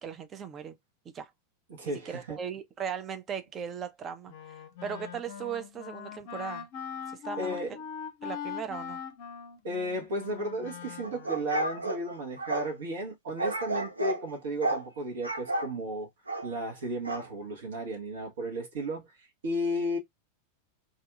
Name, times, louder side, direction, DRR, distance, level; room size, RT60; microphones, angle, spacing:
voice 1, 0.0-0.8 1.1-1.3 1.8-4.3 4.8-6.7 7.2-7.6 8.2-9.0, right 7 dB, 25° right, 0.5 m, -37 dB
voice 2, 1.7-2.4 7.4-7.8 9.6-16.1 16.4-19.1 19.4-20.0, equal, 60° right, 1.2 m, -34 dB
Wind instrument woodwind instrument, 4.3-11.6, left 8 dB, 45° left, 0.5 m, -41 dB
sound 1, 11.0-12.7 13.4-14.2 14.6-14.9 15.2-15.7 16.3-16.5 17.1-17.3, right 2 dB, 80° right, 0.7 m, -32 dB
2.7 x 2.5 x 2.3 m
figure-of-eight pair, 90°, 0 cm